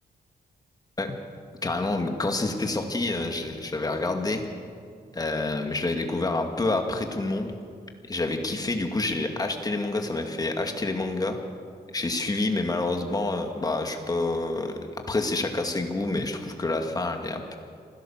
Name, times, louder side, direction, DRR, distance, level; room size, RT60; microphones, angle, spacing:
voice 1, 1.6-4.4 5.1-7.5 8.1-11.4 11.9-14.8 15.1-17.6, left 2 dB, 20° left, 4 dB, 2.3 m, -28 dB
26.0 x 16.5 x 7.4 m, 2.1 s
wide cardioid pair, 140°, 17 cm